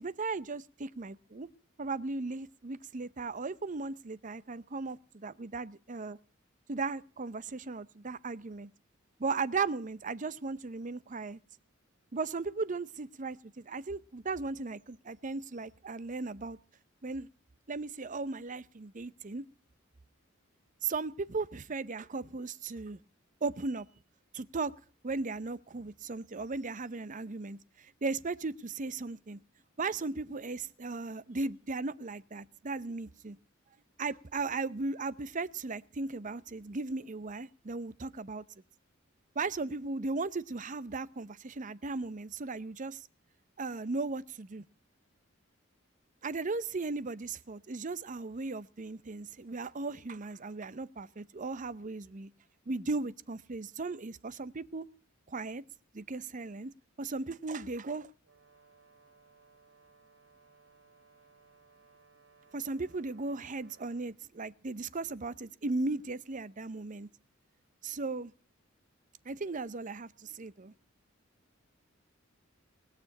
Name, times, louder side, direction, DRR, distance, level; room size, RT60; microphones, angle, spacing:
voice 1, 0.0-1.5 1.8-6.2 6.7-8.7 9.2-11.4 12.1-16.6 17.0-17.3 17.7-19.4 20.8-23.0 23.4-23.9 24.3-24.7 25.0-29.4 29.8-33.4 34.0-38.4 39.4-43.0 43.6-44.6 46.2-52.3 52.7-54.9 55.3-55.6 55.9-56.7 57.0-58.1 62.5-67.1 67.8-68.3 69.3-70.7, right 3 dB, 40° right, 0.7 m, -36 dB
Brass instrument, 58.2-64.1, right 4 dB, 85° right, 2.6 m, -63 dB
20.0 x 6.9 x 9.7 m
head